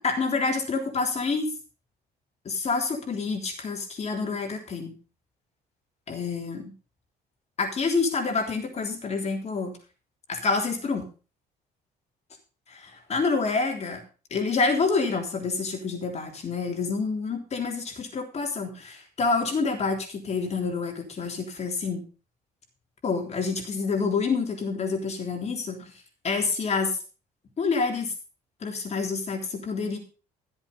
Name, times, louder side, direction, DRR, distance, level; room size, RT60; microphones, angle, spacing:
voice 1, 0.0-1.5 2.5-5.0 6.1-6.7 7.6-9.8 10.3-11.1 12.7-14.0 14.3-22.1 23.0-25.9 26.2-27.0 27.6-28.1 28.6-30.0, left 4 dB, 40° left, 3 dB, 3.5 m, -27 dB
13.5 x 8.2 x 5.4 m, 0.35 s
cardioid pair, 110°, 17 cm